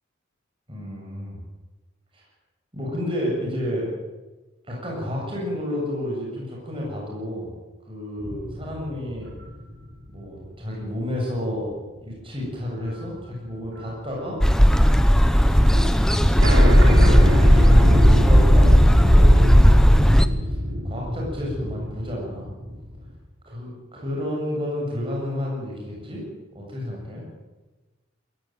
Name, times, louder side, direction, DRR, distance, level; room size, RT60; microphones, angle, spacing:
voice 1, 0.7-1.4 2.1-2.2 2.7-3.9 4.6-7.6 7.8-9.3 10.1-11.7 12.0-14.7 15.3-20.6 20.8-22.5 23.5-26.2 26.5-27.3, left 1 dB, 25° right, -3 dB, 7.6 m, -31 dB
sound 1, 8.2-10.8 11.3-11.4 12.9-13.2 13.5-14.9 15.2-15.3 15.5-15.6 15.9-16.0 16.4-23.1, left 1 dB, 80° right, 4.9 m, -25 dB
sound 2, 14.4-20.3, equal, 5° left, 1.0 m, -15 dB
21.5 x 16.5 x 9.3 m, 1.2 s
head